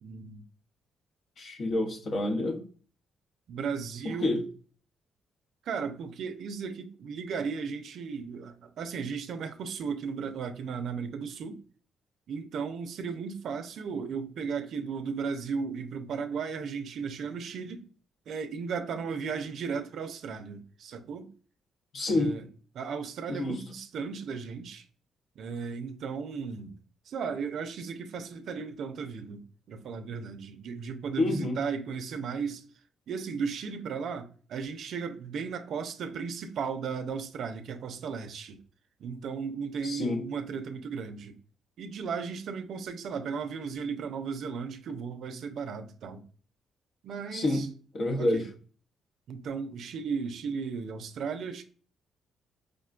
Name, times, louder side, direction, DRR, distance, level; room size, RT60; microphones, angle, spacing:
voice 1, 0.0-0.4 1.7-1.8 3.5-4.4 5.6-11.6 12.3-17.9 18.3-21.3 22.1-22.4 22.7-24.8 25.4-26.8 27.1-32.6 33.1-38.6 39.0-41.4 41.8-46.2 47.0-47.7 48.2-48.5 49.3-51.6, right 5 dB, 70° right, 0.4 m, -35 dB
voice 2, 1.4-2.6 4.0-4.4 21.9-22.3 23.3-23.6 31.2-31.6 39.8-40.2 47.3-48.5, left 2 dB, 55° left, 0.8 m, -28 dB
4.9 x 2.2 x 2.4 m
cardioid pair, 90°, 0 cm